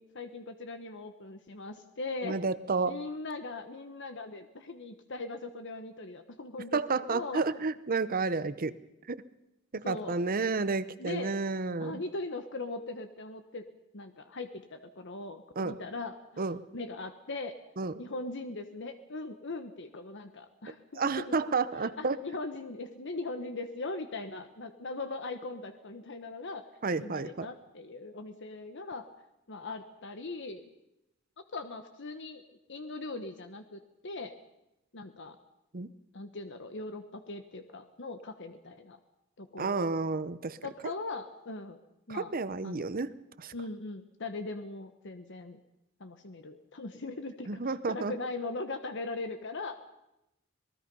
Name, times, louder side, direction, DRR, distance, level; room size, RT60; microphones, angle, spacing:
voice 1, 0.0-2.4 2.8-7.4 9.8-10.2 11.0-11.3 11.8-13.6 13.9-16.4 16.7-17.6 18.0-26.7 27.0-29.1 29.5-30.7 31.5-32.4 32.7-34.3 34.9-35.4 36.1-39.0 39.4-39.9 40.6-41.8 42.1-42.3 42.6-42.9 43.5-45.6 46.0-47.6 47.9-49.8, left 3 dB, 55° left, 8 dB, 1.2 m, -40 dB
voice 2, 2.2-3.0 6.7-8.7 9.1-9.2 9.7-12.0 15.6-15.7 16.4-16.6 17.8-17.9 21.0-22.2 26.8-27.5 35.7-35.9 39.6-40.6 42.1-43.1 43.4-43.5 47.5-48.1, right 4 dB, 40° right, 15 dB, 0.8 m, -31 dB
26.5 x 19.5 x 5.5 m, 0.90 s
head